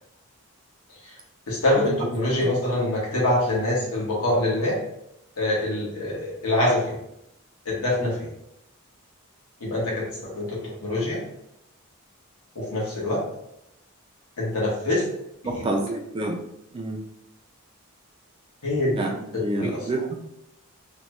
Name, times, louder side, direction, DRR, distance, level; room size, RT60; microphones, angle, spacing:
voice 1, 1.5-4.8 5.4-7.0 7.6-8.3 9.6-11.2 12.5-13.2 14.4-15.1 15.4-15.6 18.6-19.0 19.3-19.9, left 1 dB, 80° left, -4 dB, 1.2 m, -25 dB
voice 2, 15.4-16.4 16.7-17.0 19.0-20.2, right 2 dB, 25° right, 2 dB, 0.3 m, -28 dB
3.0 x 2.2 x 2.9 m, 0.81 s
head